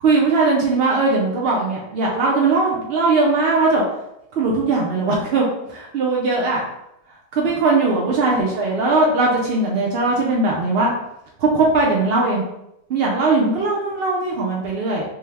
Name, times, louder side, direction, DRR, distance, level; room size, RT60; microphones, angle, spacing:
voice 1, 0.0-3.8 4.3-6.6 7.3-10.9 11.4-12.4 12.9-15.0, right 3 dB, 80° right, -2 dB, 0.5 m, -19 dB
3.3 x 2.1 x 3.3 m, 0.82 s
omnidirectional pair, 1.7 m